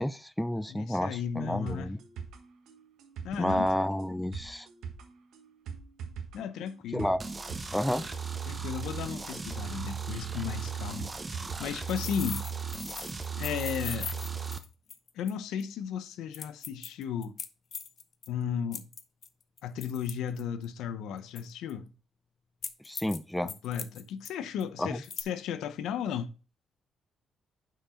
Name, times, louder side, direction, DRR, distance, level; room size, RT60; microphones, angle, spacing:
voice 1, 0.0-2.0 3.4-4.7 6.9-7.2 7.7-8.1 22.8-23.5 24.8-25.0, equal, 5° left, 0.5 m, -30 dB
voice 2, 0.7-2.0 3.2-3.7 6.3-7.1 8.5-12.4 13.4-14.1 15.1-17.4 18.3-18.9 19.6-21.9 23.4-26.3, left 8 dB, 85° left, 0.7 m, -35 dB
sound 1, 1.7-11.7 12.0-12.1, right 6 dB, 85° right, 1.3 m, -43 dB
sound 2, 7.2-14.6, right 6 dB, 25° right, 0.9 m, -36 dB
sound 3, 11.9-15.3 15.6-15.7 16.3-18.3 18.7-20.7 21.4-21.7 22.6-23.2 23.5-24.3 24.6-24.7 25.0-25.2, left 6 dB, 50° left, 0.7 m, -40 dB
6.1 x 4.7 x 5.0 m
cardioid pair, 90°, 0 cm